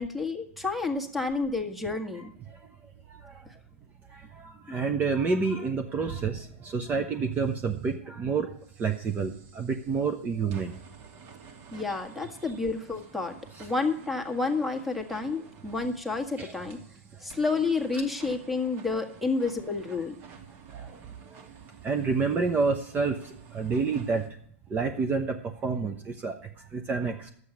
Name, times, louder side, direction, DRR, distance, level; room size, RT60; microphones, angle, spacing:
voice 1, 0.0-2.3 11.7-16.8 17.2-20.1, left 3 dB, ahead, 7 dB, 1.7 m, -30 dB
voice 2, 2.1-2.6 3.1-3.4 4.1-10.8 12.2-12.5 13.5-13.7 16.4-16.6 17.9-18.0 20.7-21.4 21.8-24.4 24.7-27.3, right 4 dB, 25° right, 7 dB, 0.9 m, -29 dB
sound 1, 7.3-7.9 8.6-24.3, right 5 dB, 45° right, 2.5 m, -52 dB
11.5 x 8.1 x 7.1 m, 0.66 s
hypercardioid pair, 110°, 7 cm